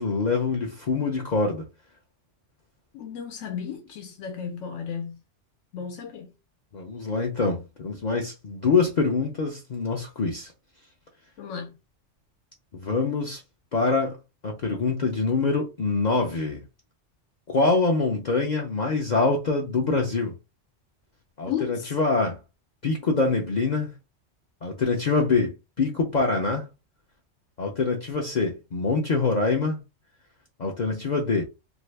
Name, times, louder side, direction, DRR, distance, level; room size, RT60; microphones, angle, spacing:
voice 1, 0.0-1.6 6.7-10.5 12.7-13.4 13.7-14.2 14.4-16.6 17.5-20.3 21.4-22.4 22.8-23.9 24.6-26.7 27.6-29.8 30.6-31.5, left 3 dB, 50° left, 0.6 m, -25 dB
voice 2, 2.9-5.2 5.7-6.3 11.4-11.8 21.5-22.0, left 7 dB, 80° left, 0.9 m, -34 dB
2.7 x 2.6 x 3.2 m
omnidirectional pair, 1.2 m